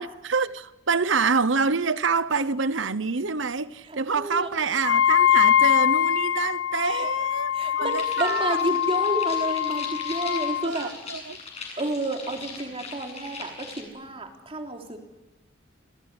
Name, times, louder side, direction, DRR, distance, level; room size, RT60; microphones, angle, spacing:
voice 1, 0.0-8.8 10.2-11.4, right 4 dB, 75° right, 1.0 m, -27 dB
voice 2, 3.9-4.5 6.8-7.1 7.5-10.9 11.8-15.0, right 1 dB, 30° right, 3.6 m, -31 dB
Wind instrument woodwind instrument, 4.8-10.7, left 10 dB, 85° left, 1.1 m, -23 dB
sound 1, 7.9-13.8, left 4 dB, 35° left, 8.0 m, -40 dB
28.5 x 19.0 x 9.8 m
head